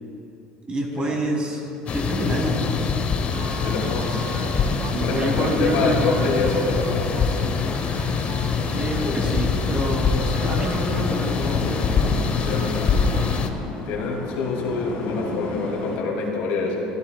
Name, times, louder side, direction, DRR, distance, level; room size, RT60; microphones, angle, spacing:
voice 1, 0.7-2.9 4.9-6.4 8.7-12.1, right 1 dB, 35° right, 0 dB, 2.3 m, -27 dB
sound 1, 1.9-13.5, left 6 dB, 40° left, 0.8 m, -24 dB
sound 2, 3.3-13.4, right 6 dB, 65° right, 0.7 m, -37 dB
voice 2, 3.6-4.2 5.0-7.3 12.5-13.0 13.9-16.8, left 3 dB, 80° left, -2 dB, 2.3 m, -26 dB
sound 3, 11.0-16.0, left 3 dB, 60° left, 2.1 m, -33 dB
14.5 x 11.5 x 2.3 m, 2.8 s
supercardioid pair, 95°, 3 cm